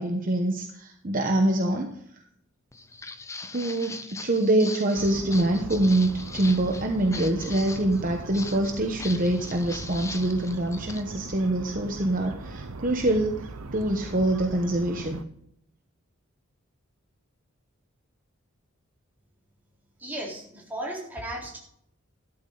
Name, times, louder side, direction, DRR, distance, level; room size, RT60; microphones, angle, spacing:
voice 1, 0.0-2.2 3.5-15.2, right 1 dB, 40° right, 3 dB, 1.2 m, -25 dB
Walk footsteps, 2.7-11.0, left 4 dB, 15° left, 0.6 m, -41 dB
sound 1, 4.9-15.2, right 3 dB, 85° right, 0.8 m, -39 dB
voice 2, 20.0-21.6, right 1 dB, 10° right, -3 dB, 3.9 m, -35 dB
13.0 x 12.0 x 4.0 m, 0.70 s
head